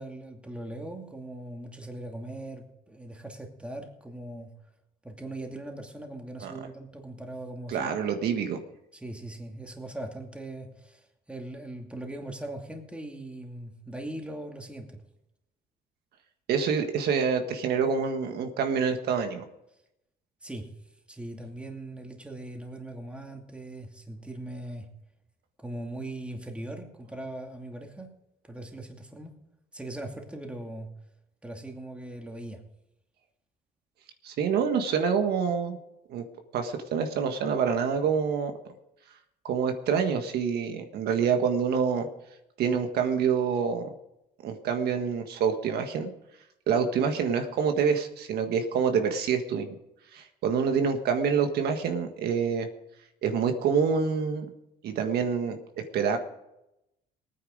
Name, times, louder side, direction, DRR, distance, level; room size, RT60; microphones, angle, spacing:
voice 1, 0.0-4.5 5.0-7.9 8.9-15.0 20.4-20.7 21.1-24.9 25.6-28.1 28.5-29.4 29.7-30.9 31.4-32.6, right 1 dB, 5° right, 2 dB, 2.5 m, -40 dB
voice 2, 7.7-8.6 16.5-19.4 34.2-35.8 36.1-36.2 36.5-38.5 39.4-42.1 42.6-43.9 44.4-46.1 46.7-49.7 50.1-52.7 53.2-54.5 54.8-55.6 55.9-56.2, right 6 dB, 70° right, 6 dB, 1.6 m, -26 dB
19.5 x 9.5 x 5.1 m, 0.87 s
cardioid pair, 110°, 17 cm